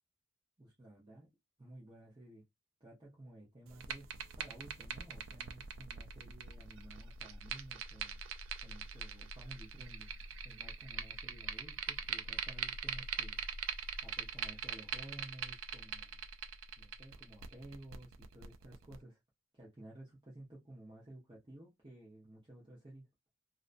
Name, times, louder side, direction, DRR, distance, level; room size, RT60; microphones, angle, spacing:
voice 1, 0.6-1.3 1.6-2.4 2.8-4.1 4.4-8.2 8.6-10.1 10.4-13.4 14.0-16.2 16.8-19.2 19.5-23.1, right 1 dB, 25° right, 0.7 m, -54 dB
sound 1, 3.7-19.0, right 7 dB, 70° right, 0.3 m, -43 dB
2.6 x 2.2 x 2.4 m
head